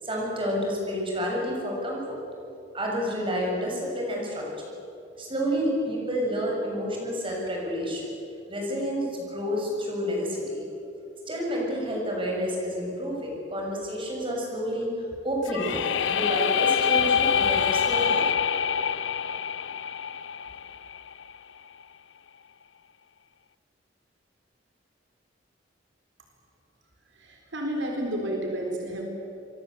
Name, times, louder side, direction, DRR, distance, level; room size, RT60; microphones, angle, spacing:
voice 1, 0.0-2.2 2.7-4.7 5.2-8.1 8.5-10.7 11.3-14.9 15.2-18.2, equal, 30° right, -1 dB, 7.3 m, -29 dB
sound 1, 15.4-21.3, left 7 dB, 70° left, 0.6 m, -25 dB
voice 2, 27.1-29.0, right 1 dB, 75° right, 1 dB, 4.2 m, -31 dB
28.0 x 23.0 x 8.0 m, 2.7 s
head